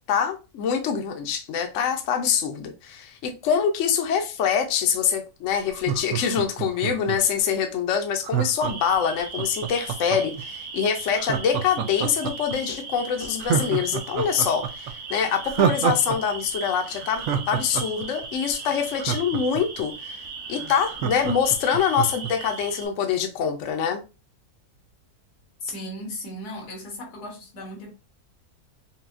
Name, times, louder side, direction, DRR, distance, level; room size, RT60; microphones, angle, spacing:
voice 1, 0.1-20.2 20.5-24.0, left 7 dB, 60° left, 1.0 m, -25 dB
Laughter, 5.7-7.4 8.2-10.4 11.2-12.6 12.9-13.0 13.4-16.2 16.4-16.5 16.9-19.8 20.3-20.4 20.6-22.3 22.7-22.8, right 8 dB, 70° right, 0.7 m, -27 dB
sound 1, 8.6-22.9, right 4 dB, 85° right, 1.6 m, -38 dB
voice 2, 25.6-27.9, left 1 dB, 85° left, 1.7 m, -36 dB
5.5 x 2.3 x 2.6 m
omnidirectional pair, 1.6 m